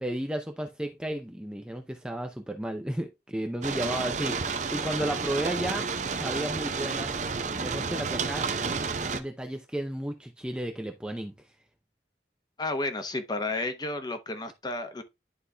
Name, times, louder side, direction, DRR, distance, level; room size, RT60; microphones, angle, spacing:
voice 1, 0.0-5.9 6.2-7.2 7.5-8.5 9.1-11.3, right 1 dB, 5° right, 0.5 m, -33 dB
sound 1, 3.6-9.2, right 4 dB, 40° right, 0.6 m, -31 dB
voice 2, 12.6-15.0, left 2 dB, 25° left, 0.9 m, -32 dB
11.5 x 4.1 x 2.2 m
head